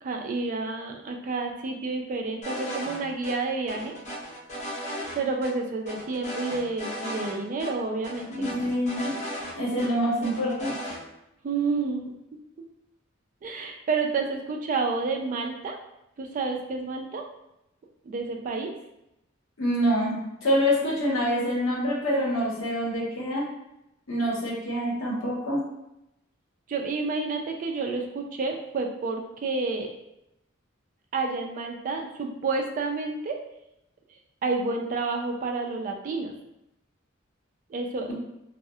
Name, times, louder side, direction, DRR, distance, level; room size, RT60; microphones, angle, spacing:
voice 1, 0.0-3.9 5.2-8.5 11.4-12.2 13.4-15.8 16.2-17.2 18.1-18.7 26.7-29.9 31.1-33.4 34.4-36.3 37.7-38.1, right 3 dB, 40° right, 3 dB, 0.3 m, -29 dB
sound 1, 2.4-3.0 3.2-3.3 3.7-5.2 5.4-5.5 5.9-7.3 7.6-7.7 8.0-9.9 10.2-11.0, equal, 35° left, 0.5 m, -36 dB
voice 2, 8.3-9.2 9.6-10.8 19.6-23.4 24.1-25.6, equal, 75° left, -5 dB, 0.8 m, -26 dB
2.3 x 2.0 x 2.6 m, 0.86 s
head